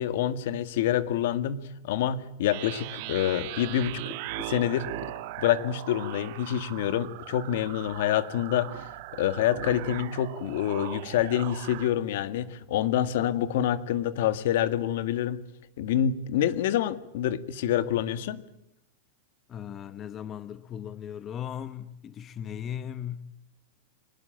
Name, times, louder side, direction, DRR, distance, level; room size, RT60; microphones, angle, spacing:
voice 1, 0.0-4.9 5.4-8.9 9.2-15.4 15.8-18.4, left 10 dB, 60° left, 1.9 m, -27 dB
sound 1, 2.4-11.9, right 17 dB, 45° right, 1.3 m, -39 dB
voice 2, 19.5-23.3, left 9 dB, 20° left, 0.8 m, -37 dB
24.5 x 20.0 x 9.0 m
supercardioid pair, 165°, 0 cm